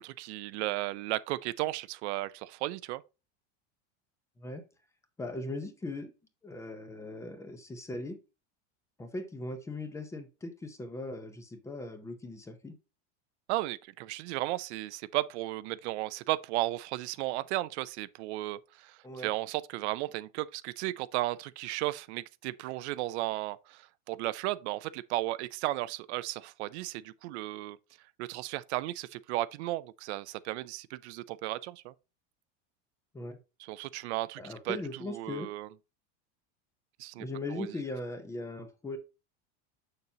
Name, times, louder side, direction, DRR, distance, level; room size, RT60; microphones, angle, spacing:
voice 1, 0.0-3.0 13.5-27.8 28.2-31.9 33.6-35.7 37.0-37.3 37.5-37.8, right 17 dB, 65° right, 0.5 m, -35 dB
voice 2, 5.2-6.1 6.4-8.2 9.0-12.7 19.0-19.3 33.1-33.4 34.4-35.5 37.2-39.0, left 2 dB, 10° left, 0.6 m, -39 dB
7.0 x 6.7 x 2.7 m
supercardioid pair, 165°, 36 cm